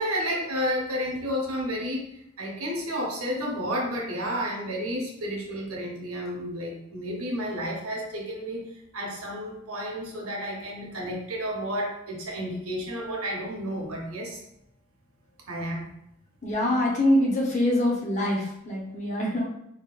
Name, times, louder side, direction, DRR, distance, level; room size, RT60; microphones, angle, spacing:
voice 1, 0.0-2.0 2.4-14.4 15.5-15.9, equal, 85° right, -1 dB, 1.1 m, -31 dB
voice 2, 16.4-19.4, left 1 dB, 35° left, -3 dB, 1.0 m, -24 dB
4.2 x 3.8 x 2.5 m, 0.81 s
head